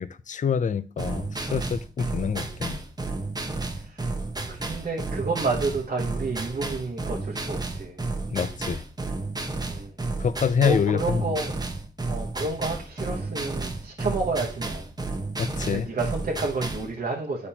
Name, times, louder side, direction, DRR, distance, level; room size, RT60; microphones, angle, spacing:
voice 1, 0.0-2.8 8.3-8.8 10.2-11.4 15.4-15.9, left 7 dB, 45° left, 0.4 m, -26 dB
sound 1, 1.0-16.9, right 3 dB, 20° right, 0.8 m, -32 dB
voice 2, 3.7-4.1 4.5-8.0 9.6-9.9 10.6-11.5 12.1-14.9 15.6-17.5, right 3 dB, 55° right, 0.9 m, -30 dB
8.5 x 4.2 x 2.8 m
cardioid pair, 60°, 18 cm